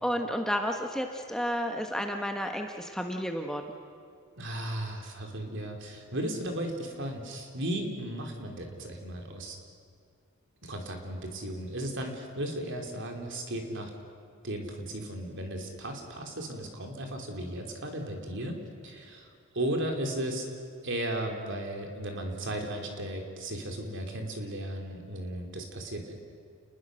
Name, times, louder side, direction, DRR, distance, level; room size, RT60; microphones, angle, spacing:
voice 1, 0.0-3.6, equal, 5° left, 3 dB, 1.1 m, -31 dB
voice 2, 4.4-9.6 10.6-13.9 14.4-20.5 20.8-26.1, right 1 dB, 55° right, 3 dB, 3.3 m, -35 dB
29.5 x 20.5 x 6.4 m, 2.4 s
head